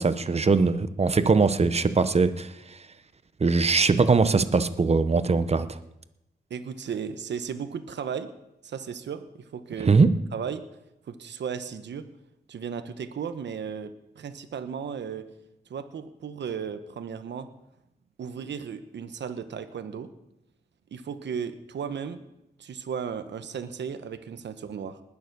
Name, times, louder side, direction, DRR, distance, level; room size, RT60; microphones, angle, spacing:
voice 1, 0.0-2.5 3.4-5.8 9.8-10.1, right 4 dB, 35° right, 12 dB, 0.9 m, -21 dB
voice 2, 6.5-8.3 8.6-9.9 10.3-10.6 11.1-12.0 12.5-15.2 15.7-17.5 18.2-20.1 20.9-22.3 22.6-25.0, right 7 dB, 85° right, 9 dB, 1.0 m, -35 dB
20.0 x 7.0 x 6.8 m, 0.86 s
wide cardioid pair, 95°, 18 cm